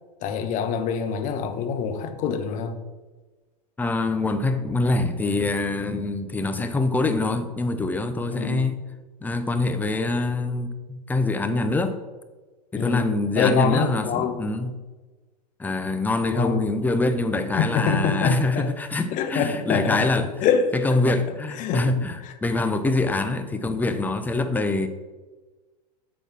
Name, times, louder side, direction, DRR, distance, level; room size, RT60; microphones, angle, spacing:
voice 1, 0.2-2.8 8.3-8.6 12.8-14.5 16.3-16.6 17.6-18.7 19.1-20.1 20.4-21.2 21.6-21.8 22.2-22.3, left 6 dB, 35° left, 8 dB, 0.9 m, -25 dB
voice 2, 3.8-8.8 9.2-12.0 12.7-14.7 15.6-20.3 20.7-24.9, left 2 dB, 10° left, 8 dB, 0.7 m, -24 dB
8.0 x 4.3 x 5.9 m, 1.3 s
hypercardioid pair, 105°, 21 cm